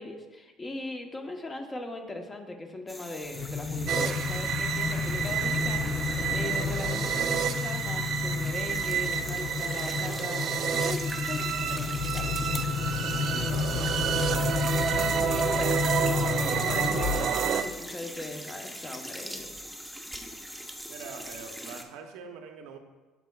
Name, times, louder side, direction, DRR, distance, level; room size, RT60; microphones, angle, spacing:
voice 1, 0.0-12.4 14.8-19.5, left 2 dB, 20° left, 4 dB, 0.9 m, -39 dB
sound 1, 2.9-21.8, equal, ahead, 0.6 m, -42 dB
sound 2, 3.3-17.6, left 5 dB, 50° left, 0.4 m, -32 dB
sound 3, 3.9-17.6, right 7 dB, 50° right, 0.4 m, -30 dB
voice 2, 13.2-14.3 20.9-22.8, right 5 dB, 85° right, 4 dB, 0.7 m, -43 dB
13.0 x 4.6 x 2.3 m, 1.2 s
cardioid pair, 125°, 0 cm